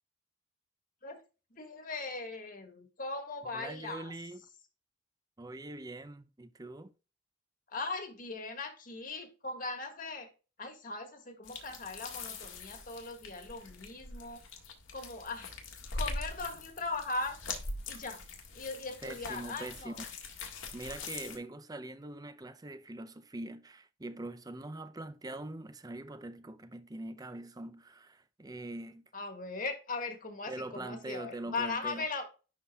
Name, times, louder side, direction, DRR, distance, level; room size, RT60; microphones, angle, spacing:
voice 1, 1.5-4.1 7.7-10.3 10.6-14.4 14.9-15.5 15.9-17.4 17.9-18.2 18.5-20.0 21.0-21.1 29.1-32.3, left 3 dB, 45° left, 1.6 m, -39 dB
voice 2, 3.5-4.4 5.4-6.9 19.0-20.0 20.7-29.0 30.5-32.0, right 2 dB, 20° right, 0.5 m, -43 dB
sound 1, 11.4-21.4, left 3 dB, 90° left, 1.8 m, -43 dB
11.0 x 4.1 x 2.3 m
head